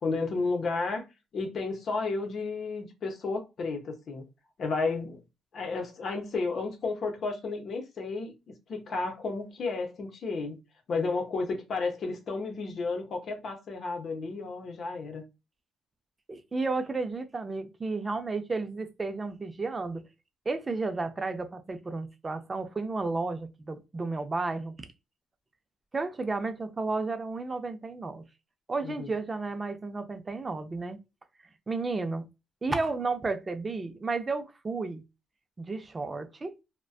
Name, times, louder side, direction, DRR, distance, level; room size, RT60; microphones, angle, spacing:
voice 1, 0.0-1.1 1.3-4.3 4.6-5.2 5.5-10.6 10.9-15.2 28.8-29.1, left 3 dB, 60° left, 0.7 m, -32 dB
voice 2, 16.3-20.0 20.5-24.9 25.9-28.2 28.7-31.0 31.7-32.3 32.6-35.0 35.6-36.5, right 3 dB, 30° right, 0.5 m, -32 dB
2.4 x 2.2 x 2.3 m
cardioid pair, 90°, 0 cm